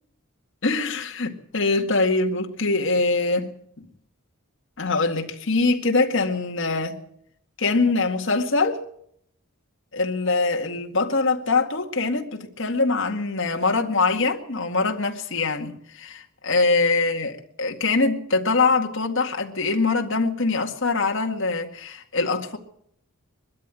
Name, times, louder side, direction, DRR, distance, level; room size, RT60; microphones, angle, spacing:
voice 1, 0.6-3.5 4.8-7.0 7.6-8.8 9.9-22.6, left 3 dB, 55° left, 2.0 m, -23 dB
22.0 x 13.0 x 9.1 m
head